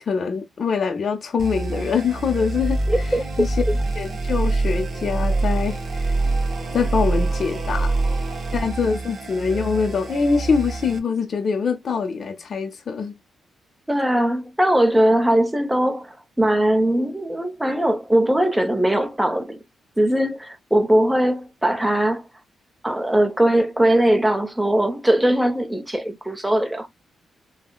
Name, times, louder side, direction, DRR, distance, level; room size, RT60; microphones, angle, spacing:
voice 1, 0.1-3.1 3.4-3.5 3.9-6.1 6.7-8.0 8.5-13.2, left 5 dB, 50° left, 0.6 m, -24 dB
sound 1, 1.4-11.0, right 2 dB, 40° right, 1.0 m, -25 dB
voice 2, 2.9-3.2 13.9-19.6 20.0-22.3 22.8-26.9, right 1 dB, 5° right, 0.7 m, -20 dB
3.6 x 2.1 x 2.2 m
cardioid pair, 95°, 0 cm